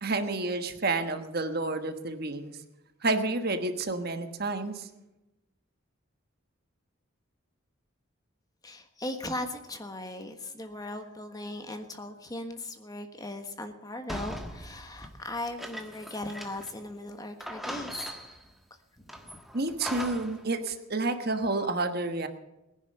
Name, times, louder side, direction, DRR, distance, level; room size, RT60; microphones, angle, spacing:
voice 1, 0.0-2.5 3.0-4.9 19.5-22.3, right 2 dB, 50° right, 8 dB, 1.3 m, -30 dB
voice 2, 8.6-18.1 18.9-19.4, left 1 dB, 20° left, 6 dB, 1.4 m, -38 dB
sound 1, 14.1-16.8 17.1-17.2 17.4-18.5 19.1-20.4, equal, ahead, 1.4 m, -40 dB
19.5 x 10.5 x 6.7 m, 0.94 s
head